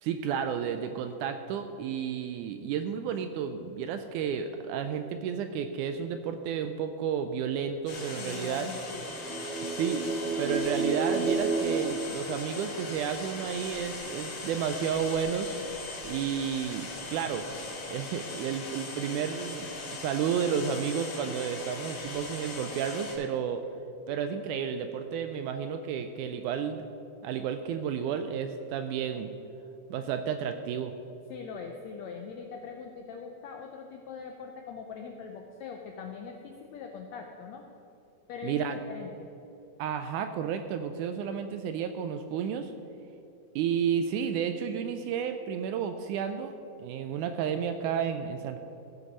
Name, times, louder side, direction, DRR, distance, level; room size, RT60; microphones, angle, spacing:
voice 1, 0.0-8.7 9.7-10.0 10.4-15.5 16.0-17.5 17.9-19.7 20.0-23.6 24.1-26.9 27.2-29.3 29.9-30.9 38.4-38.8 39.8-42.7 43.6-46.5 46.8-48.6, right 7 dB, 80° right, 8 dB, 1.8 m, -31 dB
sound 1, 7.9-23.1, left 3 dB, 60° left, 2.8 m, -40 dB
voice 2, 8.1-9.2 31.3-37.6 38.3-39.3, left 6 dB, 80° left, 3 dB, 1.5 m, -42 dB
sound 2, 9.0-12.9, right 4 dB, 55° right, 2.3 m, -31 dB
16.0 x 6.0 x 5.3 m, 2.8 s
omnidirectional pair, 3.9 m